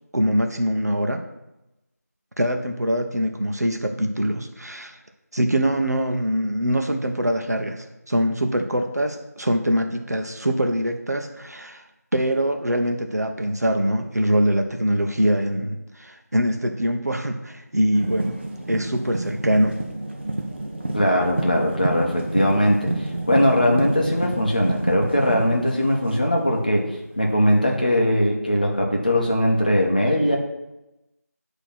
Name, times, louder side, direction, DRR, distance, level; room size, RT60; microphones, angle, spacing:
voice 1, 0.1-1.2 2.4-5.0 5.3-11.8 12.1-18.4 18.7-19.8, equal, 70° right, 5 dB, 0.9 m, -23 dB
sound 1, 17.9-26.8 27.6-27.7, right 2 dB, 40° right, 0.7 m, -29 dB
voice 2, 20.9-26.8 27.2-30.4, equal, 30° left, 0 dB, 0.8 m, -20 dB
7.9 x 3.0 x 5.7 m, 0.95 s
figure-of-eight pair, 175°, 9 cm